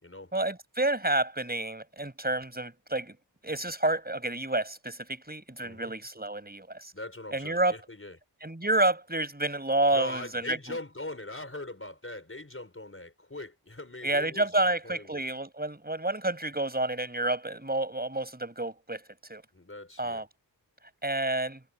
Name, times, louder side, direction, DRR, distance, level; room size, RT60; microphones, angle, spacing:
voice 1, 0.3-3.2 3.4-6.9 7.3-7.8 8.4-10.8 14.0-19.0 19.3-19.4 20.0-20.3 21.0-21.6, right 2 dB, 20° right, 7.2 m, -29 dB
voice 2, 5.6-5.9 6.9-8.2 9.9-15.2 19.5-20.2, left 2 dB, 30° left, 5.1 m, -41 dB
wide cardioid pair, 65°, 42 cm